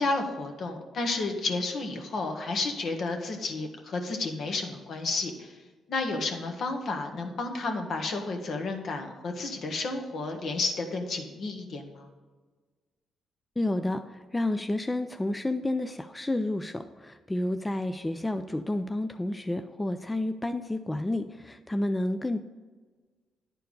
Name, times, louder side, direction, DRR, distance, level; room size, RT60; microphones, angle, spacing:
voice 1, 0.0-5.5 5.9-12.1, left 3 dB, 60° left, 4 dB, 1.4 m, -31 dB
voice 2, 13.6-22.4, left 1 dB, 15° left, 8 dB, 0.4 m, -30 dB
10.0 x 4.5 x 5.4 m, 1.4 s
cardioid pair, 90°, 0 cm